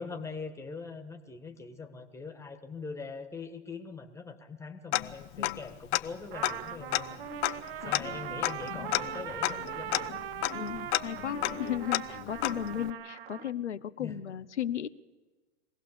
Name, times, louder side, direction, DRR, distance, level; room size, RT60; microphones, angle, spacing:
voice 1, 0.0-10.2 14.0-14.2, left 4 dB, 10° left, 6 dB, 1.6 m, -42 dB
Tick-tock, 4.9-5.7 5.9-6.0 6.4-12.9, left 18 dB, 35° left, 0.7 m, -32 dB
Trumpet, 6.3-13.5, right 11 dB, 60° right, 0.9 m, -40 dB
voice 2, 10.5-14.9, left 10 dB, 90° left, 12 dB, 0.8 m, -35 dB
23.0 x 16.5 x 6.8 m, 1.3 s
hypercardioid pair, 110°, 34 cm